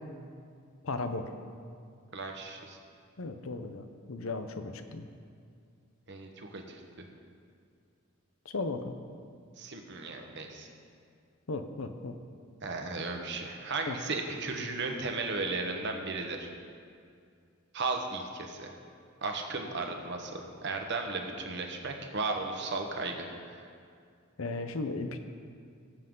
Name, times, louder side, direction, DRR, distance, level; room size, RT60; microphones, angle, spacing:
voice 1, 0.8-1.3 3.2-5.1 8.5-8.9 11.5-12.2 13.9-14.0 24.4-25.2, left 3 dB, 70° left, 8 dB, 0.7 m, -36 dB
voice 2, 2.1-2.8 6.1-7.0 9.6-10.7 12.6-16.5 17.7-18.7 19.2-23.7, right 3 dB, 55° right, 3 dB, 1.2 m, -35 dB
18.0 x 7.8 x 3.8 m, 2.3 s
head